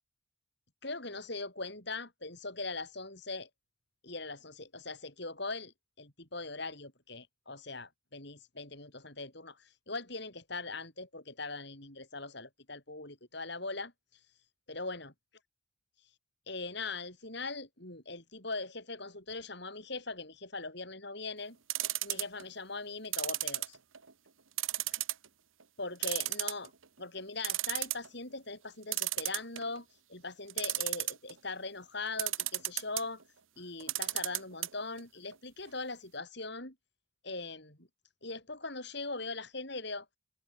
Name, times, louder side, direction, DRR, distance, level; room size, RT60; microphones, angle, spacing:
voice 1, 0.8-3.5 4.0-13.9 14.7-15.1 16.5-21.6 22.0-23.8 25.8-26.7 27.0-33.2 33.6-36.7 37.2-37.9 38.2-40.1, left 3 dB, 55° left, 6.2 m, -41 dB
sound 1, 21.7-22.4 23.1-24.1 24.6-25.3 25.6-25.7 26.0-26.8 27.2-27.3 27.4-28.1 28.9-29.8 30.5-31.3 32.2-33.0 33.8-34.7 35.0-35.1 35.3-35.4, right 16 dB, 75° right, 1.7 m, -33 dB
head